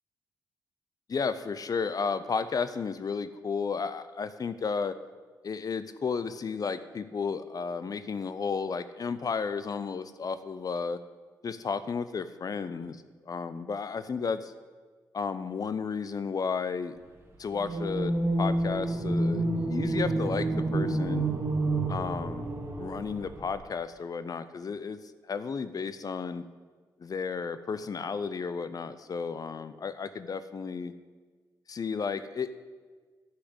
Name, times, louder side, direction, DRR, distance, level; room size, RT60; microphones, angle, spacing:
voice 1, 1.1-4.9 5.4-11.0 11.4-14.5 15.1-17.0 17.4-21.3 21.9-22.5 22.8-25.0 25.3-26.4 27.0-30.9 31.7-32.5, left 5 dB, 50° left, 13 dB, 0.6 m, -33 dB
sound 1, 17.5-23.5, right 2 dB, 30° right, 2.1 m, -29 dB
10.0 x 5.7 x 8.0 m, 1.4 s
supercardioid pair, 55°, 8 cm